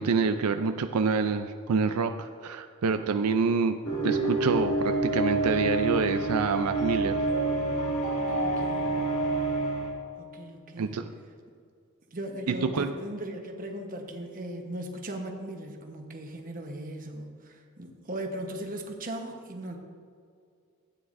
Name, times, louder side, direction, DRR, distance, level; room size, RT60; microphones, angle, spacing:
voice 1, 0.0-3.8 4.0-7.2 10.8-11.0 12.5-12.9, right 5 dB, 90° right, 7 dB, 0.4 m, -27 dB
sound 1, 3.8-9.9, right 2 dB, 75° left, 2.1 m, -27 dB
voice 2, 8.4-9.0 10.2-11.0 12.1-19.8, right 1 dB, 40° right, 3 dB, 1.1 m, -38 dB
14.5 x 9.3 x 2.6 m, 2.2 s
head